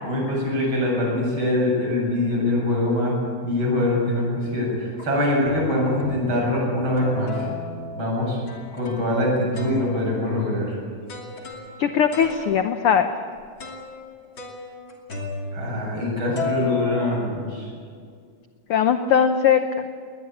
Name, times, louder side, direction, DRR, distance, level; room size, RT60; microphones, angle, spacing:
voice 1, 0.0-7.5 8.0-8.4 8.7-10.8 15.5-17.7, left 1 dB, 40° right, -2 dB, 8.5 m, -23 dB
sound 1, 4.0-4.4 5.0-5.1 5.5-6.5 7.0-9.2 9.5-16.1 16.4-17.8, left 3 dB, 40° left, 3.3 m, -34 dB
voice 2, 11.8-13.1 18.7-19.6, left 8 dB, 70° left, 8 dB, 1.4 m, -19 dB
22.0 x 19.5 x 8.5 m, 2.1 s
omnidirectional pair, 3.4 m